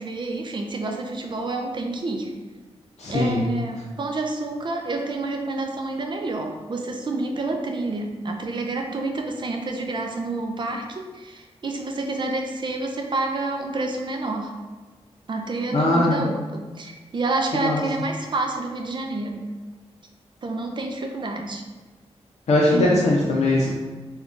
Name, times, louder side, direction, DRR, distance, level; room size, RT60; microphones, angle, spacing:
voice 1, 0.0-2.3 3.1-14.6 15.3-19.5 20.4-21.6 22.7-23.0, right 2 dB, 45° right, 3 dB, 0.4 m, -28 dB
voice 2, 3.0-3.4 15.7-16.1 17.5-17.8 22.5-23.7, left 2 dB, 85° left, -5 dB, 0.5 m, -20 dB
3.6 x 2.2 x 2.4 m, 1.3 s
wide cardioid pair, 125°, 11 cm